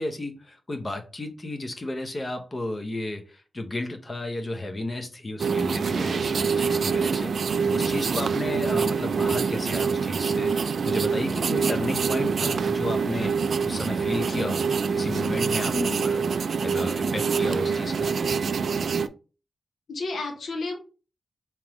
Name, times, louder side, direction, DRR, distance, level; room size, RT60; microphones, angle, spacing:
voice 1, 0.0-10.5 10.8-13.3 13.6-18.1, left 2 dB, 25° left, 6 dB, 0.8 m, -33 dB
sound 1, 5.4-19.1, right 5 dB, 60° right, 0.3 m, -25 dB
voice 2, 14.2-14.5 15.7-16.1 19.9-20.8, left 3 dB, 70° left, 2 dB, 1.0 m, -32 dB
3.5 x 3.0 x 4.8 m, 0.34 s
wide cardioid pair, 165°, 0 cm